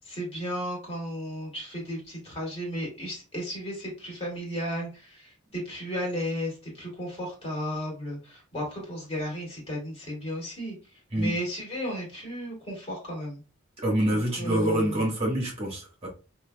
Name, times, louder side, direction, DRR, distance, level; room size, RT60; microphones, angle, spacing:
voice 1, 0.0-10.8 11.1-13.4 14.1-15.1, equal, 30° left, -2 dB, 2.1 m, -34 dB
voice 2, 13.8-16.1, right 1 dB, 30° right, -1 dB, 1.4 m, -26 dB
5.7 x 2.9 x 2.2 m, 0.32 s
head